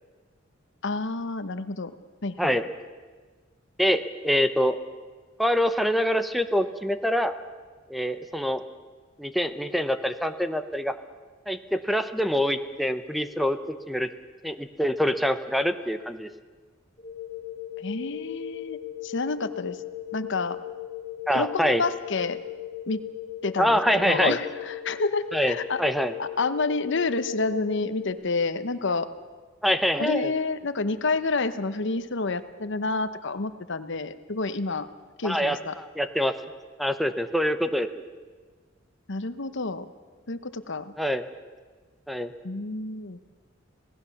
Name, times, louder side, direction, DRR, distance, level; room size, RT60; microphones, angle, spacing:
voice 1, 0.8-1.9 2.2-2.5 17.8-19.8 20.1-20.6 21.3-22.4 22.9-23.0 23.4-25.8 26.2-29.1 30.0-34.9 35.2-35.8 39.1-39.9 40.3-40.9 42.4-43.2, left 3 dB, 65° left, 12 dB, 1.0 m, -29 dB
voice 2, 3.8-4.7 5.4-7.3 7.9-8.6 9.2-10.9 11.5-13.6 13.9-14.1 14.4-16.3 21.3-21.8 23.6-24.4 25.3-26.1 29.6-30.3 35.2-36.3 36.8-38.0 41.0-41.3 42.1-42.3, equal, ahead, 10 dB, 0.8 m, -25 dB
sound 1, 17.0-28.1, left 13 dB, 30° left, 4.1 m, -38 dB
26.5 x 18.0 x 7.1 m, 1.4 s
head